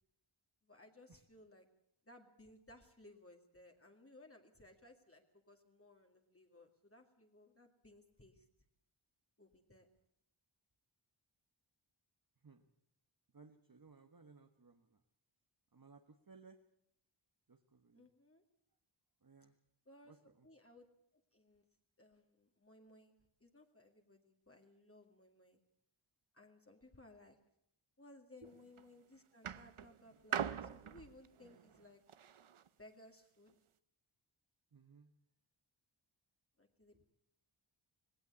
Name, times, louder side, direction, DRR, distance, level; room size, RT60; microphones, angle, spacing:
voice 1, 0.6-1.7 2.0-8.5 9.4-9.9 17.9-18.4 19.4-19.5 19.9-20.9 21.1-21.7 22.0-23.2 23.4-25.6 26.3-27.4 28.0-32.0 32.8-33.5 36.6-37.0, left 1 dB, 30° left, 3 dB, 2.1 m, -61 dB
voice 2, 13.3-15.0 15.7-16.6 17.5-18.0 19.2-19.5 20.1-20.5 34.7-35.1, right 4 dB, 45° right, 5 dB, 1.3 m, -61 dB
sound 1, 28.4-28.8 29.4-32.7 33.5-33.6, right 8 dB, 80° right, 0.8 m, -43 dB
19.0 x 17.5 x 8.2 m, 0.75 s
wide cardioid pair, 75°, 48 cm